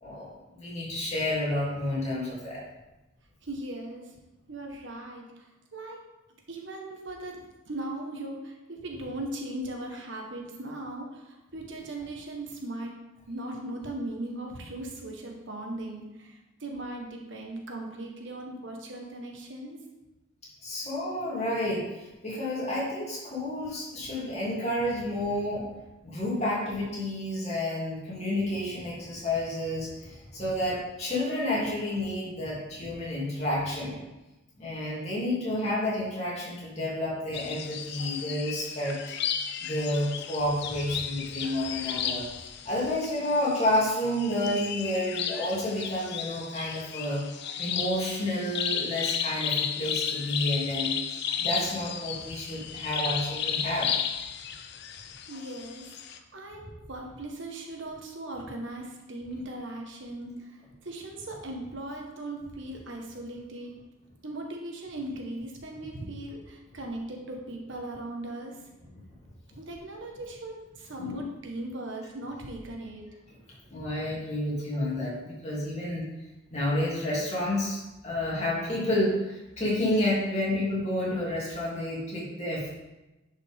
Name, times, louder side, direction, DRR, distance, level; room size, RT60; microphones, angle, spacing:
voice 1, 0.0-2.6 20.6-25.7 26.0-34.0 34.6-39.0 39.6-42.3 42.6-47.2 47.6-53.9 71.0-71.3 73.7-76.0 76.5-82.7, left 1 dB, 35° left, -6 dB, 2.8 m, -30 dB
voice 2, 3.4-4.1 4.5-6.0 6.5-12.9 13.3-19.8 55.3-63.7 64.2-68.7 69.6-73.0, right 1 dB, 65° right, 1 dB, 1.3 m, -38 dB
sound 1, 37.3-56.2, left 8 dB, 55° left, 0.5 m, -34 dB
10.0 x 5.5 x 3.6 m, 1.0 s
head